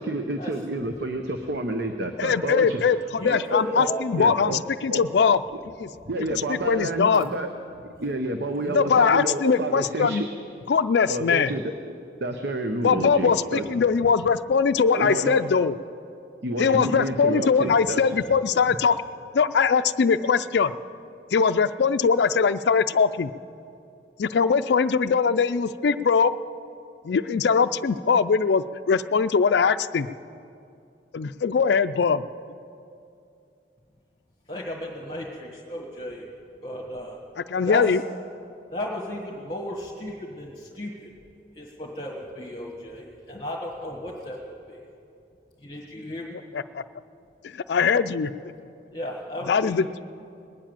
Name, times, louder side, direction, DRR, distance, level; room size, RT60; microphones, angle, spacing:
voice 1, 0.0-2.8 3.2-3.9 4.2-4.6 4.9-5.1 6.1-7.5 8.0-10.3 11.1-11.7 12.2-13.6 14.9-15.4 16.4-18.2, right 1 dB, 65° right, 5 dB, 0.8 m, -29 dB
voice 2, 2.2-5.4 5.8-5.9 6.2-7.2 8.7-10.2 10.7-11.5 12.8-15.8 16.6-19.0 19.3-20.7 21.3-23.3 24.2-26.3 27.0-30.1 31.1-32.2 37.5-38.0 46.5-46.8 47.4-48.3 49.5-49.9, left 5 dB, 70° left, 10 dB, 0.4 m, -21 dB
voice 3, 3.2-4.1 8.6-8.8 9.2-9.3 34.5-36.2 36.6-37.2 37.6-37.8 38.7-41.1 41.5-44.4 44.7-44.8 45.6-46.3 48.9-49.8, left 1 dB, 30° left, -3 dB, 1.7 m, -34 dB
20.0 x 7.5 x 9.0 m, 2.5 s
head